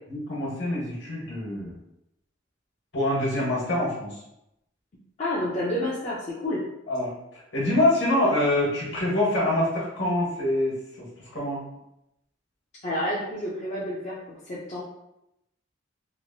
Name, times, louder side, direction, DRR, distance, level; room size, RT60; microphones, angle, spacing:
voice 1, 0.1-1.7 2.9-4.2 6.9-11.1 11.3-11.6, left 1 dB, 65° left, -4 dB, 1.2 m, -25 dB
voice 2, 5.2-6.6 12.8-14.8, left 1 dB, 35° left, -6 dB, 0.4 m, -29 dB
3.0 x 2.5 x 2.6 m, 0.85 s
head